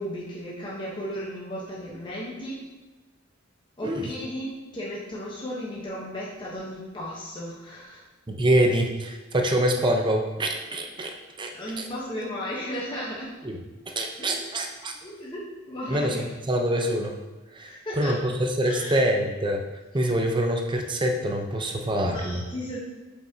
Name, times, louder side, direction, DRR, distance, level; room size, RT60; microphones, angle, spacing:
voice 1, 0.0-2.6 3.8-8.0 11.5-13.3 14.2-14.7 14.9-16.2 17.6-18.2 18.6-19.0 22.0-22.8, equal, 25° left, -6 dB, 1.0 m, -35 dB
voice 2, 8.3-11.1 11.4-11.5 13.4-13.6 14.0-14.9 15.9-17.1 17.5-19.6 19.9-22.4, right 1 dB, 25° right, 3 dB, 0.7 m, -25 dB
7.7 x 5.2 x 2.8 m, 1.1 s
head